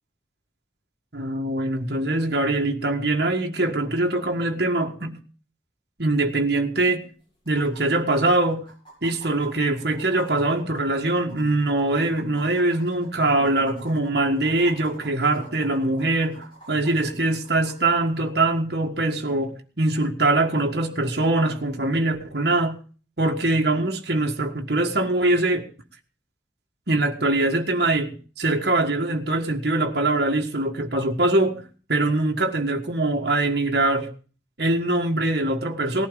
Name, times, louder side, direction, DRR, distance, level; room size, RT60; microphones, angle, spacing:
voice 1, 1.1-5.2 6.0-7.0 7.5-8.6 9.0-22.8 23.2-25.6 26.9-28.1 28.4-31.6 31.9-34.1 34.6-36.1, right 2 dB, 60° right, 1.6 m, -23 dB
sound 1, 6.7-6.8 7.5-17.8 19.4-19.5, right 3 dB, 30° left, 7.9 m, -47 dB
18.5 x 11.5 x 3.9 m
head